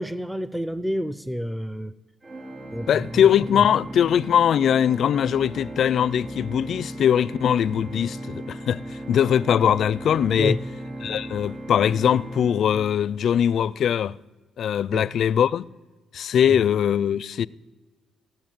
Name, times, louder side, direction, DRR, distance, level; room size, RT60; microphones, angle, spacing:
voice 1, 0.0-1.9 2.7-3.3 3.5-3.6 10.4-10.6 14.9-15.1 16.5-16.6, equal, 5° right, 0.5 m, -29 dB
Organ, 2.2-13.4, right 1 dB, 25° right, 3.0 m, -36 dB
voice 2, 2.9-10.6 11.0-14.2 14.6-15.6 16.1-17.5, left 9 dB, 65° left, 0.4 m, -21 dB
17.0 x 8.9 x 9.0 m
cardioid pair, 90°, 0 cm